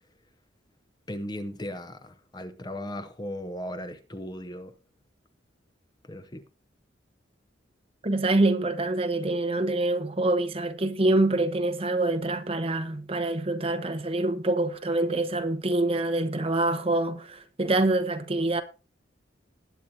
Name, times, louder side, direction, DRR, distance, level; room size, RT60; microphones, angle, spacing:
voice 1, 1.1-4.7 6.1-6.4, left 1 dB, 20° left, 0.7 m, -37 dB
voice 2, 8.0-18.6, right 2 dB, 30° right, 0.9 m, -25 dB
20.0 x 8.6 x 2.7 m
head